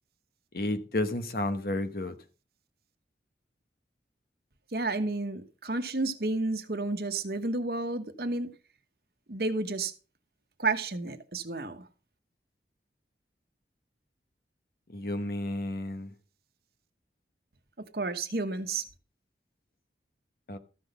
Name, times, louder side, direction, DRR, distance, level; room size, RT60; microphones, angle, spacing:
voice 1, 0.5-2.2 14.9-16.1 20.5-20.6, left 1 dB, 55° left, 1.2 m, -31 dB
voice 2, 4.7-8.5 9.3-9.9 10.6-11.8 17.8-18.9, right 3 dB, 55° right, 1.1 m, -31 dB
14.0 x 6.0 x 5.3 m
head